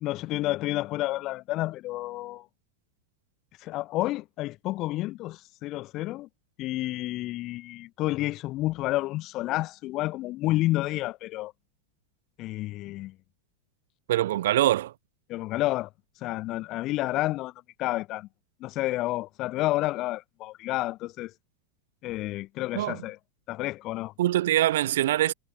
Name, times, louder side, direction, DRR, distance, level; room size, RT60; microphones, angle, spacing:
voice 1, 0.0-2.4 3.6-6.3 6.6-11.5 12.4-13.1 15.3-15.9 16.2-17.5 17.8-18.3 18.6-21.3 22.0-23.2 23.5-24.1, left 17 dB, 35° left, 1.0 m, -30 dB
voice 2, 14.1-14.9 22.7-23.0 24.2-25.3, right 14 dB, 55° right, 1.2 m, -23 dB
figure-of-eight pair, 90°, 0 cm